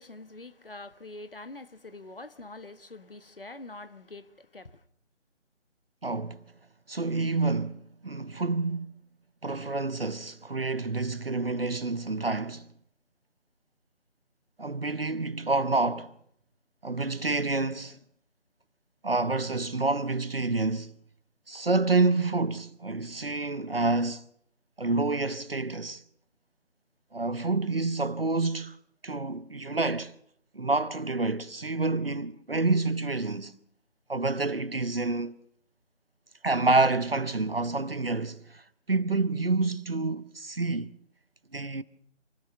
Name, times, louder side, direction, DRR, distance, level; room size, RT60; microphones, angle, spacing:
voice 1, 0.0-4.8, left 2 dB, 50° left, 1.3 m, -45 dB
voice 2, 6.0-6.4 6.9-8.9 9.4-12.7 14.6-16.1 16.8-18.0 19.0-20.9 21.5-24.3 24.8-26.0 27.1-28.8 29.0-30.1 30.5-33.5 34.1-35.4 36.4-38.6 38.9-40.9 41.5-41.8, right 3 dB, 55° right, 0.9 m, -28 dB
27.0 x 14.5 x 6.7 m
figure-of-eight pair, 160°, 36 cm